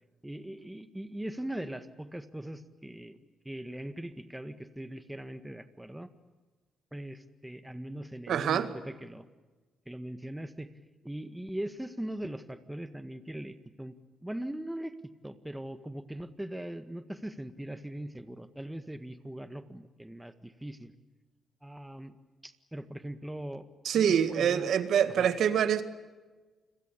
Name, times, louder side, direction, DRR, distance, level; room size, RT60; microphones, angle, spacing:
voice 1, 0.2-3.2 3.4-6.1 6.9-9.2 9.8-10.7 11.0-14.0 14.2-15.0 15.2-20.9 21.6-22.2 22.4-23.7 23.9-24.7 25.1-25.3, right 1 dB, 10° right, 9 dB, 1.7 m, -40 dB
voice 2, 8.3-8.7 23.8-25.8, right 8 dB, 75° right, 10 dB, 1.9 m, -25 dB
29.0 x 22.0 x 8.5 m, 1.3 s
cardioid pair, 70°, 0 cm